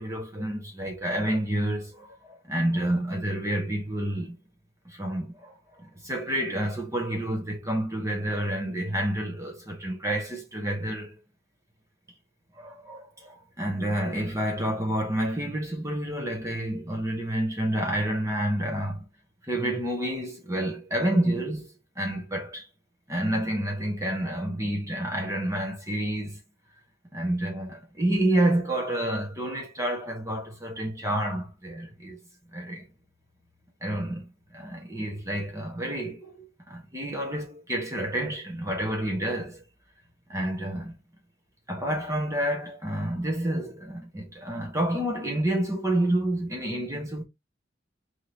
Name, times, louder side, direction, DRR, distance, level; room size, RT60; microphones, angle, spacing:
voice 1, 0.0-4.4 4.8-11.2 12.5-19.1 19.4-22.7 23.1-26.4 27.1-32.2 32.5-32.9 33.8-39.6 40.3-40.9 41.7-47.2, right 1 dB, 15° right, 1.3 m, -29 dB
4.7 x 3.7 x 2.9 m
head